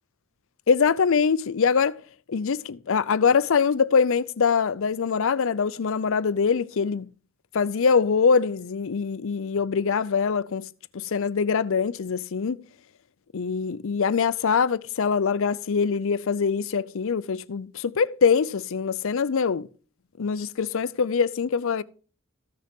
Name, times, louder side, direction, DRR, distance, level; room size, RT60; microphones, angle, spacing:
voice 1, 0.7-2.0 2.3-7.1 7.5-10.7 10.9-12.6 13.3-19.7 20.2-21.8, left 5 dB, 65° left, 0.5 m, -23 dB
14.5 x 6.5 x 3.6 m
head